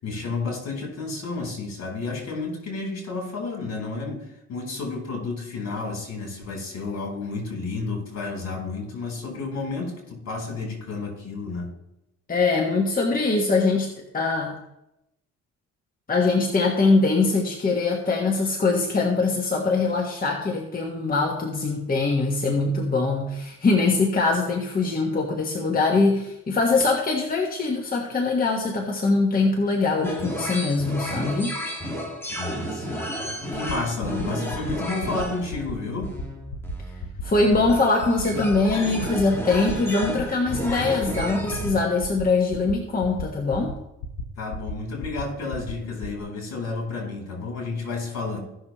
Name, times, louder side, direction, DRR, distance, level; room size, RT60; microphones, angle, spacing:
voice 1, 0.0-11.7 32.3-33.1 33.5-36.1 44.4-48.4, left 3 dB, 60° left, 0 dB, 3.8 m, -31 dB
voice 2, 12.3-14.5 16.1-31.6 37.2-43.8, left 3 dB, 30° left, 0 dB, 1.4 m, -22 dB
sound 1, 30.0-41.7, equal, 10° left, 1.9 m, -32 dB
sound 2, 33.5-33.7 34.0-34.2 34.5-34.7 35.0-35.2 35.5-35.7 36.0-36.2 36.5-36.7 37.0-37.2 37.5-37.7 38.0-38.2 38.5-38.7 39.0-39.2 39.5-39.7 40.0-40.2 40.5-40.7 41.0-41.2 41.5-41.7 42.0-42.2 42.5-42.7 43.0-43.2 43.5-43.7 44.0-44.2 44.5-44.7 45.0-45.2 45.5-45.7 46.0-46.2, left 3 dB, 80° left, 1.2 m, -33 dB
16.5 x 6.3 x 3.0 m, 0.86 s
cardioid pair, 90°, 30 cm